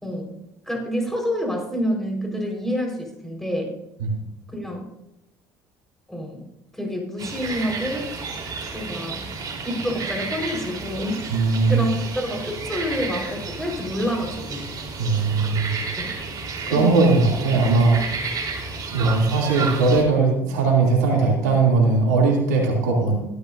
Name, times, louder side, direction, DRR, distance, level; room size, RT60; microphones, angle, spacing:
voice 1, 0.0-0.4 0.7-3.7 4.5-4.9 6.1-6.4 6.7-8.1 8.7-9.3 9.6-11.2 11.7-11.9 12.1-14.6 16.0-16.2 16.7-17.0, equal, 5° left, 0 dB, 4.6 m, -28 dB
sound 1, 7.2-20.0, right 4 dB, 45° right, 3.8 m, -32 dB
voice 2, 11.3-11.9 15.0-15.8 16.7-18.1 18.9-23.2, right 3 dB, 85° right, -1 dB, 2.8 m, -19 dB
15.5 x 13.5 x 2.7 m, 0.88 s
hypercardioid pair, 70°, 9 cm